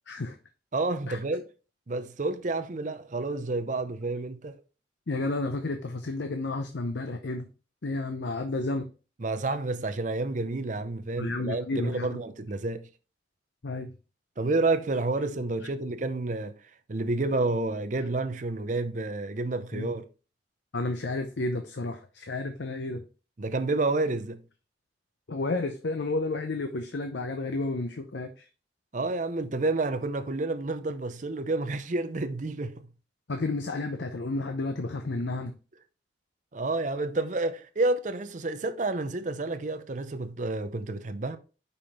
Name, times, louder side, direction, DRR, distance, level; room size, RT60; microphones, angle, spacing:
voice 1, 0.7-1.5 1.9-4.6 9.2-12.9 14.4-16.5 16.9-20.1 23.4-24.4 28.9-32.9 36.5-41.4, right 2 dB, 40° right, 0.6 m, -29 dB
voice 2, 5.1-7.5 7.8-8.9 11.2-12.2 13.6-13.9 19.7-19.9 20.7-23.0 25.3-28.4 33.3-35.5, left 2 dB, 70° left, 0.7 m, -31 dB
5.5 x 5.1 x 4.2 m
head